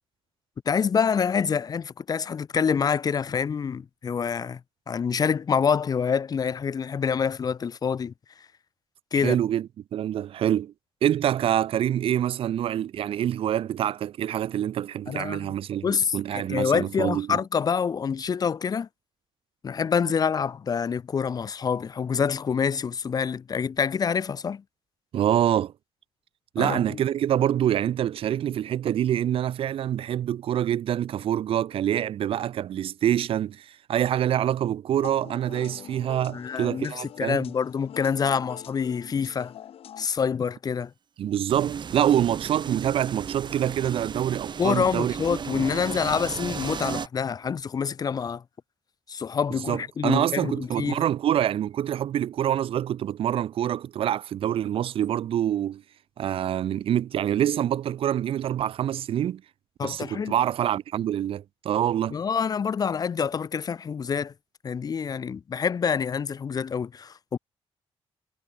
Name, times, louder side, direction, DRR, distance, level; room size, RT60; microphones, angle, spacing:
voice 1, 0.7-4.6 4.9-8.1 9.1-9.4 15.1-15.5 15.8-18.9 19.6-24.6 26.6-27.0 36.3-39.5 40.0-40.9 44.6-48.4 49.1-51.0 59.8-60.3 62.1-64.3 64.6-67.4, left 6 dB, 40° left, 0.8 m, -26 dB
voice 2, 9.1-10.7 11.0-17.4 25.1-25.7 26.5-37.4 41.2-45.1 45.5-45.6 49.7-55.8 56.2-59.4 59.8-62.2, right 11 dB, 65° right, 0.5 m, -26 dB
sound 1, 34.9-40.1, left 10 dB, 70° left, 2.1 m, -44 dB
sound 2, 41.5-47.1, right 7 dB, 50° right, 3.8 m, -34 dB
cardioid pair, 135°, 10 cm